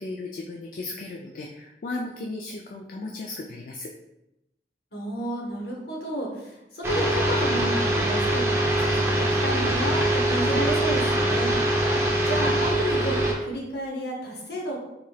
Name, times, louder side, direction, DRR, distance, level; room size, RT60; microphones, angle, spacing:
voice 1, 0.0-3.9, left 2 dB, 50° left, 0 dB, 0.3 m, -35 dB
voice 2, 4.9-8.4 8.8-11.5 11.9-14.8, right 1 dB, 65° left, -1 dB, 0.9 m, -31 dB
sound 1, 6.8-13.3, right 1 dB, 15° right, 0.5 m, -23 dB
3.8 x 3.2 x 2.3 m, 0.91 s
head